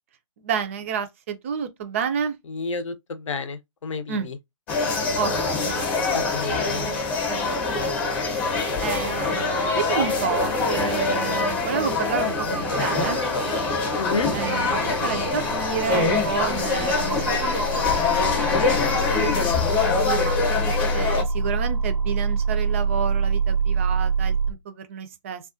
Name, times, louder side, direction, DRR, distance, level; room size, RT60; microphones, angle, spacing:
voice 1, 0.4-2.4 4.1-4.3 5.1-6.3 6.6-8.4 8.8-13.2 14.3-18.8 19.1-20.4 20.9-25.4, right 7 dB, 25° right, 0.4 m, -31 dB
voice 2, 2.5-4.3 6.1-6.8 14.0-14.3, left 5 dB, 65° left, 0.6 m, -30 dB
sound 1, 4.7-21.2, left 3 dB, 20° left, 0.8 m, -24 dB
sound 2, 12.2-24.5, right 3 dB, 90° right, 0.5 m, -27 dB
2.3 x 2.2 x 2.4 m
figure-of-eight pair, 145°, 17 cm